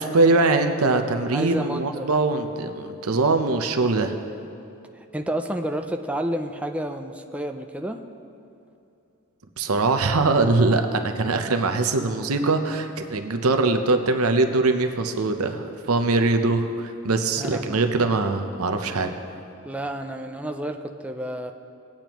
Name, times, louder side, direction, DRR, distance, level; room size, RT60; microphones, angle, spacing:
voice 1, 0.0-4.1 9.6-19.1, right 3 dB, 85° right, 6 dB, 0.8 m, -22 dB
voice 2, 1.3-2.1 5.0-8.0 17.4-17.8 19.6-21.5, right 1 dB, 5° right, 4 dB, 0.4 m, -30 dB
19.0 x 8.8 x 3.0 m, 2.8 s
head